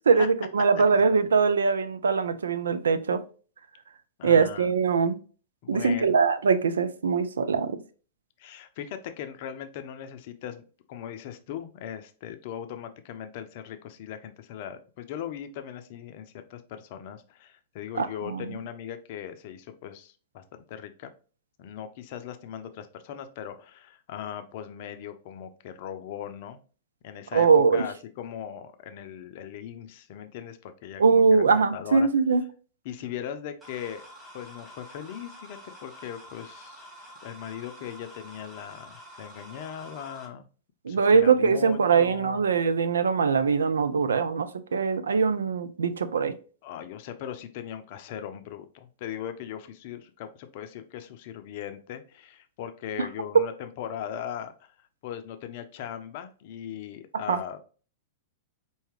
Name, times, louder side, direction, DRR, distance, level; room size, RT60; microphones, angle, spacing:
voice 1, 0.1-3.2 4.2-5.2 5.7-7.8 18.0-18.5 27.3-27.8 31.0-32.4 40.9-46.3 53.0-53.1 57.3-57.4, right 5 dB, 75° right, 0.4 m, -22 dB
voice 2, 4.2-4.7 5.6-6.1 8.4-10.6 10.9-21.1 21.6-26.6 27.0-32.1 32.8-34.0 34.3-36.9 37.2-40.5 40.9-42.5 46.6-54.7 55.0-57.6, left 9 dB, 50° left, 0.5 m, -39 dB
sound 1, 33.6-40.3, equal, 10° right, 1.7 m, -48 dB
4.6 x 2.8 x 3.1 m
figure-of-eight pair, 100°, 0 cm